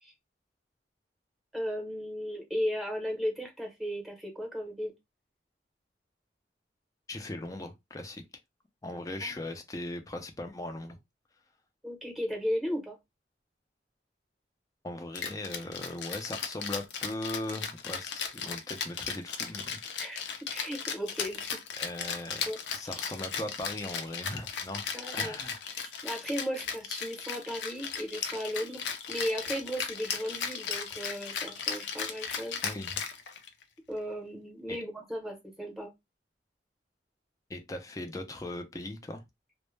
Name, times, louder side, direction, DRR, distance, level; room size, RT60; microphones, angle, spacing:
voice 1, 1.5-4.9 9.2-9.3 11.8-13.0 20.0-21.6 22.5-22.9 24.9-25.4 25.8-32.6 33.9-35.9, equal, ahead, 0.8 m, -36 dB
voice 2, 7.1-8.2 8.8-11.0 14.8-19.8 21.8-22.4 22.7-25.6 32.6-33.0 34.7-34.8 37.5-39.2, left 1 dB, 20° left, 0.4 m, -39 dB
Rattle (instrument), 15.1-33.6, left 6 dB, 75° left, 0.5 m, -36 dB
2.1 x 2.1 x 3.1 m
head